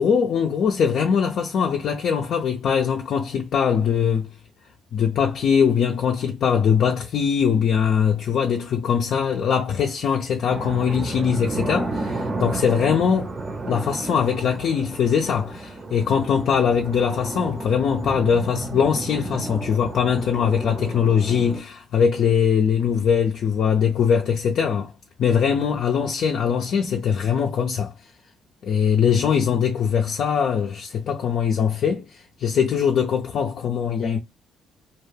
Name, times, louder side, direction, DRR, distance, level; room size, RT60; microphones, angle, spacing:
voice 1, 0.0-4.3 4.9-13.3 13.7-24.9 25.2-27.9 28.6-32.1 32.4-34.2, left 7 dB, 65° left, 0.5 m, -21 dB
sound 1, 10.5-21.6, right 2 dB, 45° right, 0.8 m, -32 dB
2.4 x 2.2 x 3.2 m
cardioid pair, 90°, 0 cm